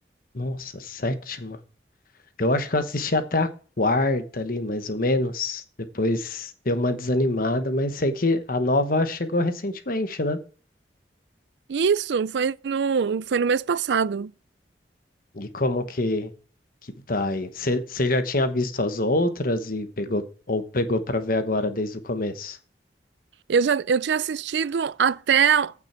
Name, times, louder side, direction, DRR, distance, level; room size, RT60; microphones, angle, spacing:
voice 1, 0.3-1.6 2.4-3.5 3.8-5.6 5.9-10.4 15.3-16.3 17.1-22.6, left 2 dB, 55° left, 1.1 m, -25 dB
voice 2, 11.7-14.3 23.5-25.7, right 6 dB, 75° right, 0.4 m, -23 dB
15.0 x 6.1 x 4.4 m
head